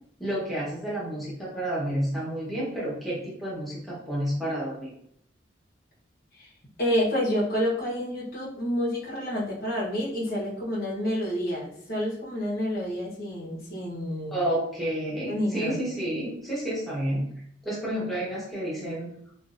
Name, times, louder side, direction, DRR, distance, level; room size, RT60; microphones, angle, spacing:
voice 1, 0.2-4.9 14.3-17.2 17.6-19.1, right 1 dB, ahead, -7 dB, 1.1 m, -30 dB
voice 2, 6.8-14.5 15.3-15.8, equal, 55° left, -5 dB, 1.0 m, -29 dB
2.6 x 2.6 x 2.5 m, 0.66 s
head